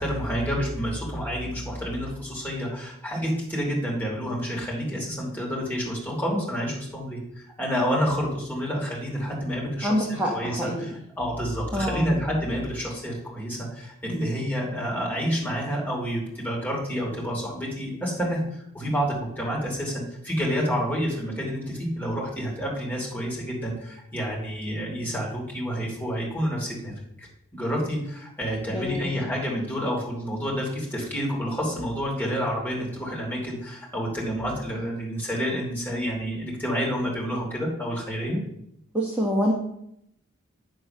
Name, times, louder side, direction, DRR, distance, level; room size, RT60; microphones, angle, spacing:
voice 1, 0.0-27.3 27.5-38.4, equal, 10° left, -4 dB, 2.8 m, -29 dB
voice 2, 9.8-10.8 11.7-12.1 28.7-29.1 38.9-39.5, equal, 5° right, -4 dB, 1.1 m, -26 dB
9.3 x 3.9 x 6.6 m, 0.76 s
head